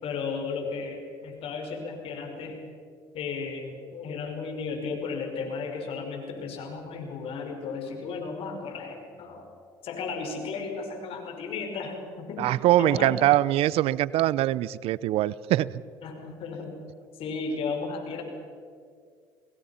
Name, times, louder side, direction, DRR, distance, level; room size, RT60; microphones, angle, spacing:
voice 1, 0.0-2.6 3.1-9.4 9.8-13.2 16.0-16.8 17.2-18.2, left 4 dB, 60° left, 4 dB, 5.7 m, -34 dB
voice 2, 12.4-15.7, right 14 dB, 65° right, 20 dB, 0.7 m, -23 dB
30.0 x 20.5 x 5.8 m, 2.2 s
hypercardioid pair, 70°, 11 cm